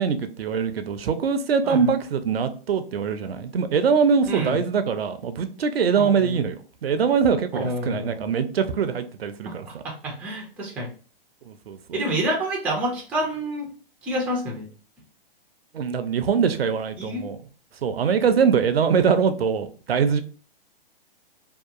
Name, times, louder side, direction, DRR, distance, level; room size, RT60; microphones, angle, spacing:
voice 1, 0.0-6.6 6.8-9.7 11.5-11.8 15.7-17.4 17.8-20.2, right 6 dB, 85° right, 0.5 m, -23 dB
voice 2, 1.6-2.0 4.3-4.6 6.0-6.4 7.5-8.5 9.5-10.9 11.9-13.7 14.0-14.7 17.0-17.3, right 1 dB, 5° right, 0.3 m, -28 dB
2.8 x 2.2 x 2.4 m
hypercardioid pair, 120°, 29 cm